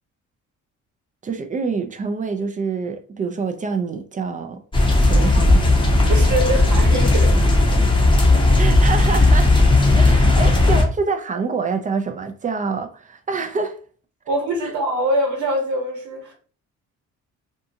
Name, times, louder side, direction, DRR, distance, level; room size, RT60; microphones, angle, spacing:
voice 1, 1.2-4.6 5.0-5.6 6.0-6.3 8.6-9.6 9.9-13.8, right 5 dB, 25° right, 0.4 m, -26 dB
sound 1, 4.7-10.8, left 2 dB, 15° left, 0.7 m, -15 dB
voice 2, 4.9-5.2 6.1-7.3 8.3-8.7 10.2-10.3 14.3-16.3, right 1 dB, 75° right, 1.0 m, -24 dB
2.7 x 2.3 x 2.7 m
cardioid pair, 90°, 30 cm